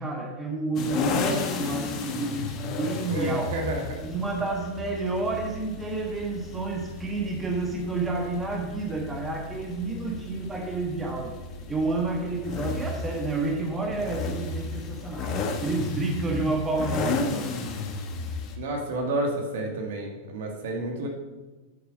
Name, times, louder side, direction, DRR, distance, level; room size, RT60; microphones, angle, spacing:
voice 1, 0.0-3.6 4.0-11.4 11.7-17.6, right 3 dB, 15° right, 2 dB, 1.4 m, -30 dB
sound 1, 0.8-18.6, left 4 dB, 35° left, 1.2 m, -33 dB
voice 2, 3.1-4.0 18.6-21.1, right 2 dB, 55° right, 2 dB, 1.8 m, -30 dB
9.6 x 6.8 x 5.2 m, 1.2 s
figure-of-eight pair, 90°, 0 cm